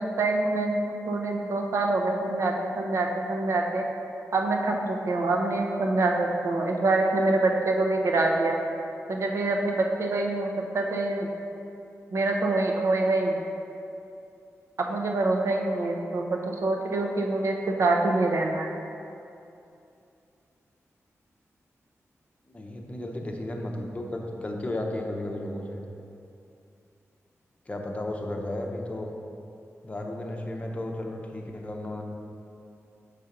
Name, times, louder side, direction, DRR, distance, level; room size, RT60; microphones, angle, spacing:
voice 1, 0.0-3.8 4.3-8.6 9.1-11.3 12.1-13.4 14.8-18.7, right 2 dB, 60° right, 1 dB, 0.7 m, -25 dB
voice 2, 22.5-25.8 27.7-29.1 29.8-32.0, left 1 dB, 25° left, 1 dB, 0.6 m, -34 dB
6.6 x 4.2 x 5.1 m, 2.7 s
wide cardioid pair, 145°, 5 cm